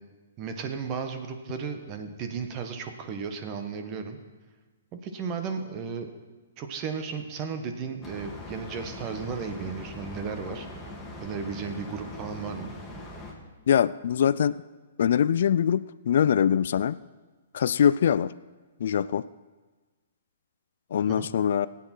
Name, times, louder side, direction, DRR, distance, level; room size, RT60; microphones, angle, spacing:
voice 1, 0.4-4.2 4.9-6.1 6.6-10.7 11.2-12.7 21.1-21.3, right 5 dB, 35° right, 6 dB, 1.4 m, -34 dB
sound 1, 8.0-13.3, left 2 dB, 5° left, 2.6 m, -41 dB
voice 2, 13.7-14.6 15.0-17.0 17.5-18.3 18.8-19.3 20.9-21.7, left 8 dB, 65° left, 16 dB, 0.3 m, -23 dB
18.5 x 8.8 x 4.5 m, 1.3 s
hypercardioid pair, 130°, 0 cm